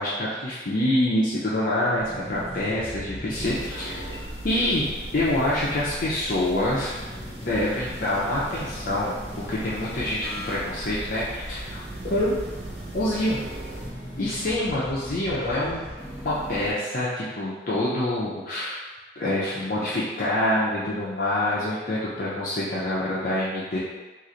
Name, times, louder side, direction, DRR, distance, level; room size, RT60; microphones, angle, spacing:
voice 1, 0.0-4.2 4.4-4.9 5.1-7.1 7.4-12.4 12.9-13.4 14.2-18.9 19.2-23.8, left 1 dB, 45° left, -8 dB, 0.5 m, -26 dB
sound 1, 2.0-16.7, equal, 5° right, 1.4 m, -40 dB
sound 2, 3.3-13.9, right 1 dB, 60° right, 0.7 m, -39 dB
3.0 x 2.4 x 3.8 m, 1.2 s
head